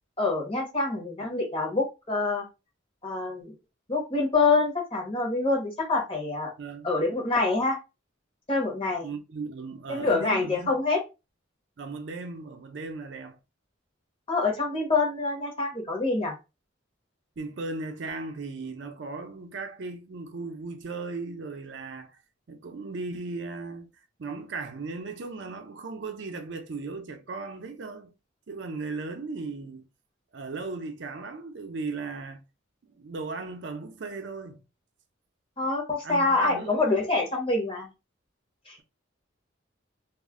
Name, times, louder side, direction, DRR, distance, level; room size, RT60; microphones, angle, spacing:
voice 1, 0.2-2.4 3.0-3.5 3.9-6.5 6.8-7.8 8.5-9.1 9.9-11.0 14.3-16.3 35.6-37.9 38.7-38.8, left 3 dB, 30° left, 0.9 m, -26 dB
voice 2, 6.6-6.9 9.0-10.8 11.8-13.4 17.4-22.1 22.5-23.9 24.2-28.1 28.5-29.8 30.3-32.4 32.9-34.6 36.0-36.9, right 3 dB, 65° right, 0.5 m, -37 dB
2.3 x 2.1 x 3.5 m
head